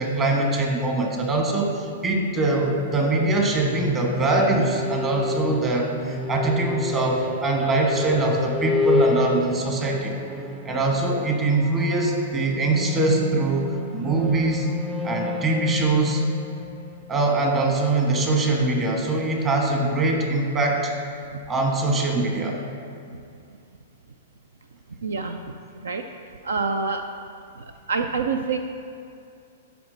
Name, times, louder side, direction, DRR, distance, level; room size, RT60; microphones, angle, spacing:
voice 1, 0.0-10.2 10.6-14.7 15.0-16.2 17.1-20.9 21.5-22.6, right 2 dB, 25° right, 1 dB, 1.3 m, -23 dB
sound 1, 3.2-17.9, left 3 dB, 10° right, 0.5 m, -30 dB
voice 2, 25.0-25.4 25.8-26.0 26.4-27.1 27.6-28.6, right 4 dB, 75° right, 7 dB, 0.4 m, -26 dB
11.0 x 4.5 x 4.0 m, 2.5 s
figure-of-eight pair, 110°, 0 cm